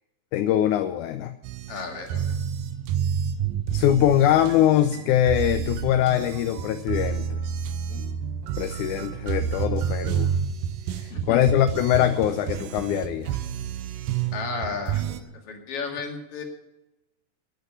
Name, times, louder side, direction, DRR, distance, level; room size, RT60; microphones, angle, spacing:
voice 1, 0.3-1.4 3.7-7.4 8.6-10.3 10.9-13.4, left 11 dB, 75° left, 9 dB, 1.9 m, -22 dB
sound 1, 1.4-15.2, right 8 dB, 80° right, 2.5 m, -29 dB
voice 2, 1.7-2.4 7.9-8.1 11.1-11.5 14.3-16.4, left 5 dB, 45° left, 3 dB, 2.8 m, -34 dB
12.5 x 9.1 x 9.5 m, 0.93 s
omnidirectional pair, 3.9 m